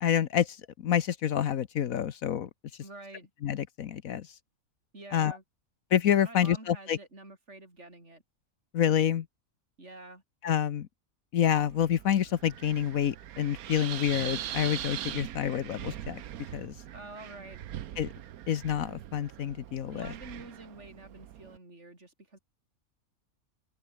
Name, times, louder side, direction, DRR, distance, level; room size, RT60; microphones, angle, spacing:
voice 1, 0.0-2.5 3.4-4.3 5.1-5.4 5.9-7.0 8.7-9.3 10.4-10.9 11.3-16.2 16.5-16.8 18.0-18.1 18.5-20.1, left 9 dB, 75° left, 1.3 m, -28 dB
voice 2, 2.8-3.3 4.9-5.4 6.2-8.2 9.8-10.2 16.9-17.6 19.9-22.4, right 2 dB, 50° right, 6.4 m, -48 dB
Wind, 11.5-21.6, right 11 dB, 90° right, 1.3 m, -41 dB
omnidirectional pair, 1.5 m